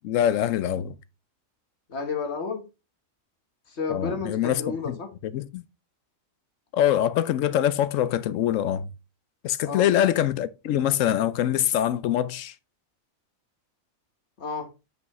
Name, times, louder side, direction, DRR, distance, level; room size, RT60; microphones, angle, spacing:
voice 1, 0.0-0.9 3.9-4.9 5.3-5.6 6.7-8.9 9.4-12.5, left 11 dB, 75° left, 0.9 m, -24 dB
voice 2, 1.9-2.6 3.7-5.1 9.6-9.9 14.4-14.7, left 4 dB, 55° left, 1.5 m, -31 dB
7.9 x 5.5 x 3.0 m
omnidirectional pair, 1.4 m